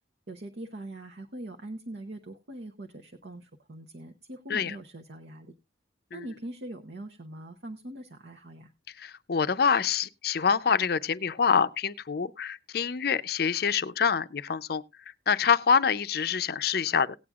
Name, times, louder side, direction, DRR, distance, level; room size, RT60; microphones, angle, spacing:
voice 1, 0.3-5.5 6.1-8.7, right 1 dB, 60° right, 0.9 m, -42 dB
voice 2, 9.0-14.8 15.3-17.2, left 6 dB, 55° left, 0.5 m, -26 dB
18.0 x 8.6 x 2.4 m
head